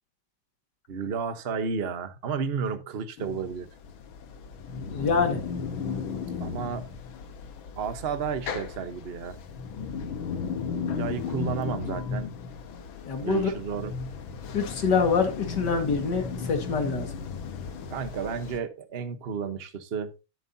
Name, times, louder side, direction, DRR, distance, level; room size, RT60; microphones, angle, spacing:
voice 1, 0.9-3.7 6.4-6.9 7.8-9.4 10.8-12.3 13.2-13.9 17.9-20.1, right 6 dB, 40° right, 1.0 m, -32 dB
sound 1, 3.2-18.6, left 5 dB, 70° left, 1.8 m, -35 dB
voice 2, 4.9-5.4 13.1-13.5 14.5-17.1, left 5 dB, 55° left, 2.5 m, -25 dB
13.0 x 7.5 x 2.7 m
omnidirectional pair, 2.3 m